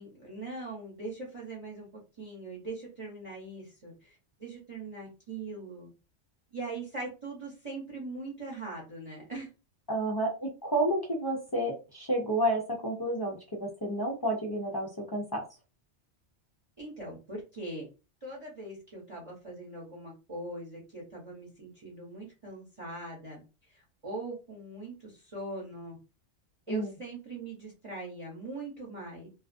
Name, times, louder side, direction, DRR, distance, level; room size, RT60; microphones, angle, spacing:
voice 1, 0.0-1.9 2.2-5.9 6.5-9.5 16.8-17.9 18.2-23.4 23.7-26.0 26.7-29.3, right 2 dB, 35° right, -3 dB, 0.8 m, -41 dB
voice 2, 9.9-15.4 26.7-26.9, right 1 dB, 40° left, -1 dB, 0.3 m, -30 dB
2.3 x 2.3 x 2.4 m, 0.30 s
omnidirectional pair, 1.1 m